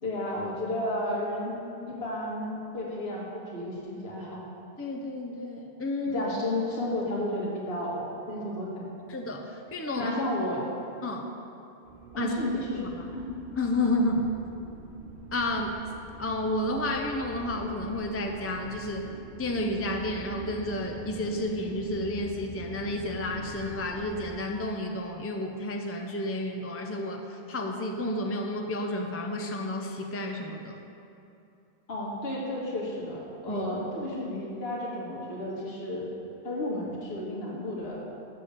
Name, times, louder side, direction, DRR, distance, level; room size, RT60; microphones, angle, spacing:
voice 1, 0.0-1.6 1.9-4.4 6.1-8.9 10.0-10.6 12.1-12.9 13.1-13.4 31.9-36.1 36.4-38.0, left 1 dB, 70° left, -4 dB, 1.8 m, -32 dB
voice 2, 4.8-6.2 8.3-8.4 9.1-10.1 11.0-11.3 12.2-12.3 12.7-13.1 13.6-14.3 15.3-15.8 16.2-19.1 19.4-30.8 33.5-33.7, left 1 dB, 20° left, 2 dB, 0.3 m, -31 dB
sound 1, 11.9-24.3, right 1 dB, 50° right, 0.9 m, -45 dB
7.5 x 6.7 x 6.9 m, 2.8 s
omnidirectional pair, 1.1 m